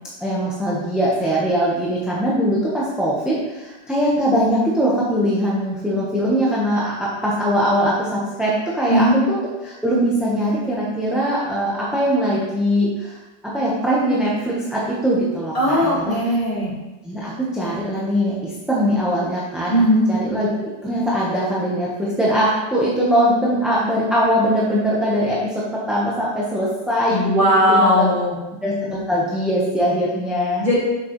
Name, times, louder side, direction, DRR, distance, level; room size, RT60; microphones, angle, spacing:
voice 1, 0.2-13.2 13.5-16.2 17.0-19.7 20.1-28.1 28.6-30.6, equal, ahead, -6 dB, 0.9 m, -21 dB
voice 2, 8.9-9.2 15.5-16.7 19.7-20.1 27.1-28.4 30.6-30.8, equal, 20° left, -7 dB, 2.3 m, -17 dB
7.7 x 6.5 x 3.2 m, 1.1 s
omnidirectional pair, 2.0 m